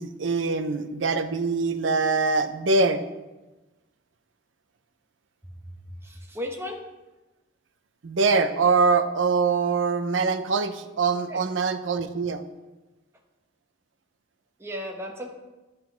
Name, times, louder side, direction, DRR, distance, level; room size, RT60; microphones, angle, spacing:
voice 1, 0.0-3.1 8.0-12.4, right 4 dB, 90° right, 10 dB, 0.6 m, -23 dB
voice 2, 6.0-6.8 11.3-11.4 14.6-15.3, left 1 dB, 15° right, 1 dB, 1.0 m, -35 dB
11.0 x 4.0 x 5.6 m, 1.1 s
head